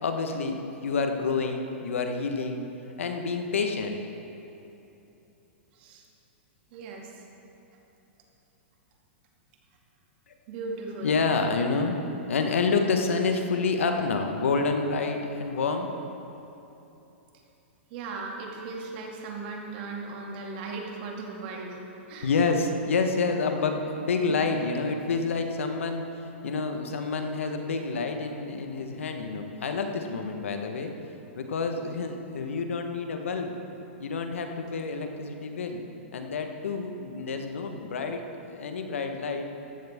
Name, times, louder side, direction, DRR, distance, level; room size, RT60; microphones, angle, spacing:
voice 1, 0.0-4.0 10.3-10.4 11.0-12.0 12.3-15.9 22.2-26.0 26.4-30.9 31.3-33.5 34.0-35.8 36.1-38.2 38.5-39.4, left 4 dB, 90° left, 5 dB, 1.2 m, -28 dB
voice 2, 5.7-6.0 6.7-7.3 10.5-11.2 17.9-22.3 24.3-24.4, right 3 dB, 50° right, -1 dB, 2.3 m, -37 dB
14.5 x 12.5 x 3.6 m, 3.0 s
hypercardioid pair, 140°, 7 cm